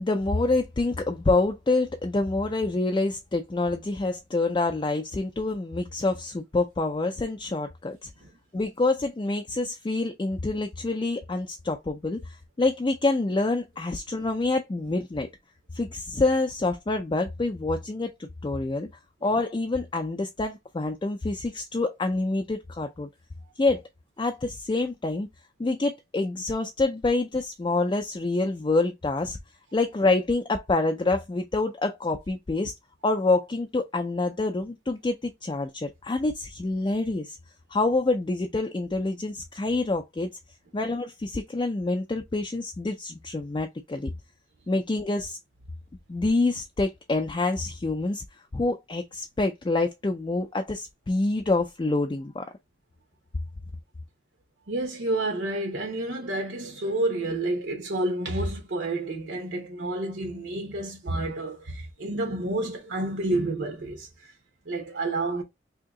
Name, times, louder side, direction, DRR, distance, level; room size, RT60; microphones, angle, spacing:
voice 1, 0.0-8.1 8.5-15.3 15.7-18.9 19.2-23.1 23.6-23.8 24.2-25.3 25.6-29.4 29.7-32.7 33.0-37.4 37.7-40.3 40.7-44.1 44.7-45.4 46.1-48.2 48.5-52.5, left 2 dB, 25° left, 0.3 m, -27 dB
voice 2, 54.7-64.3 64.7-65.4, right 2 dB, 80° right, 0.9 m, -29 dB
2.8 x 2.7 x 3.5 m
head